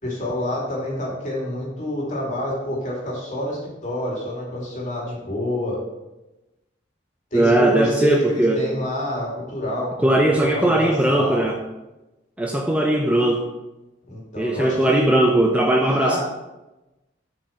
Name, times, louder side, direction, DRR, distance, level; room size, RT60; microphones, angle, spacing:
voice 1, 0.0-5.8 7.3-11.5 14.1-15.1 16.0-16.2, left 1 dB, 40° left, -3 dB, 2.7 m, -27 dB
voice 2, 7.3-8.6 10.0-11.6 12.4-13.5 14.4-16.2, right 1 dB, 5° right, 1 dB, 0.6 m, -19 dB
7.3 x 5.3 x 5.7 m, 1.0 s
head